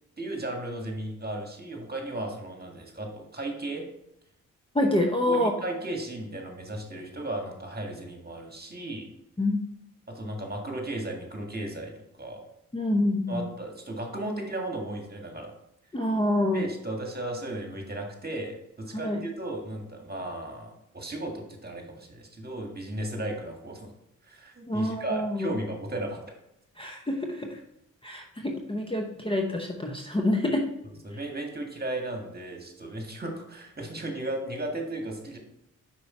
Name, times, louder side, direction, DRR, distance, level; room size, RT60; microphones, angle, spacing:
voice 1, 0.2-3.9 5.3-9.1 10.1-11.9 12.2-12.4 13.3-15.5 16.5-23.9 24.2-26.3 31.0-35.4, right 1 dB, 25° right, 2 dB, 1.8 m, -35 dB
voice 2, 4.7-5.5 9.4-9.6 12.7-13.5 15.9-16.7 19.0-19.2 24.7-25.5 26.8-27.6 28.0-30.6, left 1 dB, 15° left, 2 dB, 0.9 m, -27 dB
5.4 x 4.7 x 4.3 m, 0.81 s
supercardioid pair, 45°, 35 cm